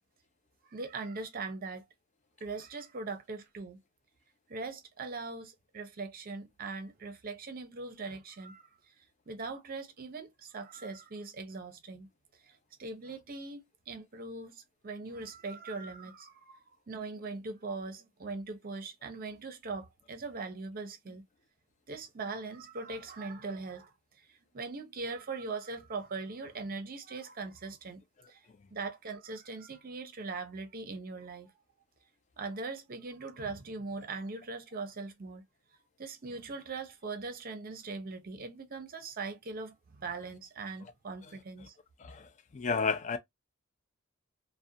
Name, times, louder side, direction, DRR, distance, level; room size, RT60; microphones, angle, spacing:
voice 1, 0.7-1.8 2.4-3.8 4.5-8.9 9.3-12.1 12.4-21.2 21.9-23.9 24.2-28.0 28.3-28.5 28.7-31.5 32.4-35.4 36.0-41.8, right 3 dB, 45° right, 0.6 m, -41 dB
voice 2, 42.0-43.2, left 5 dB, 35° left, 0.4 m, -32 dB
2.4 x 2.1 x 2.7 m
head